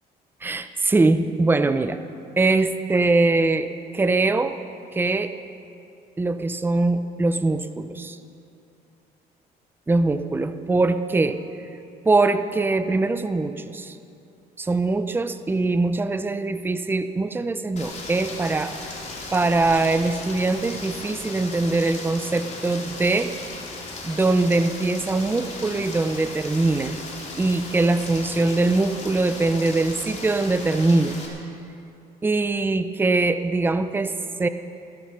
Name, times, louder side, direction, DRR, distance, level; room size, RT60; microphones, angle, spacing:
voice 1, 0.4-2.0 2.4-4.6 4.9-5.3 6.2-8.2 9.9-11.4 12.0-14.0 14.6-18.9 19.3-23.4 24.0-27.0 27.4-31.2 32.2-34.5, right 3 dB, 10° right, 10 dB, 0.6 m, -22 dB
Rain, 17.8-31.3, left 3 dB, 45° left, 3.3 m, -37 dB
18.0 x 13.0 x 5.7 m, 2.7 s
cardioid pair, 110°, 17 cm